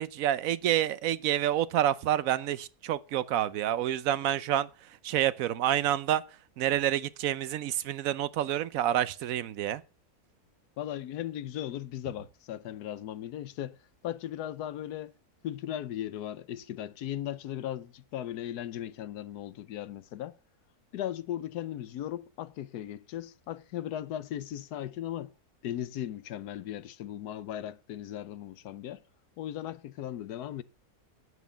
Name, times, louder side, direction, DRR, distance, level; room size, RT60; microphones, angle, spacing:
voice 1, 0.0-6.2 6.6-9.8, right 11 dB, 65° right, 1.0 m, -28 dB
voice 2, 10.8-13.8 14.0-15.1 15.4-20.4 20.9-25.3 25.6-29.0 29.4-30.6, left 11 dB, 85° left, 1.2 m, -37 dB
9.3 x 8.3 x 5.6 m
omnidirectional pair, 1.6 m